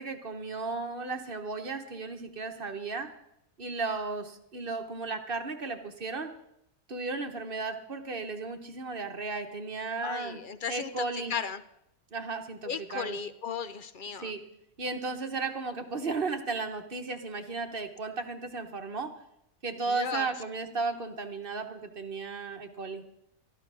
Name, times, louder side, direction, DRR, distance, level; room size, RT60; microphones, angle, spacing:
voice 1, 0.0-3.1 3.6-6.3 6.9-10.4 10.7-11.3 12.1-13.2 14.2-14.4 14.8-19.1 19.6-23.0, right 4 dB, 45° right, 7 dB, 1.1 m, -35 dB
voice 2, 10.0-11.6 12.7-14.3 19.8-20.3, left 6 dB, 50° left, 13 dB, 0.6 m, -36 dB
13.5 x 12.0 x 6.1 m, 0.81 s
omnidirectional pair, 1.5 m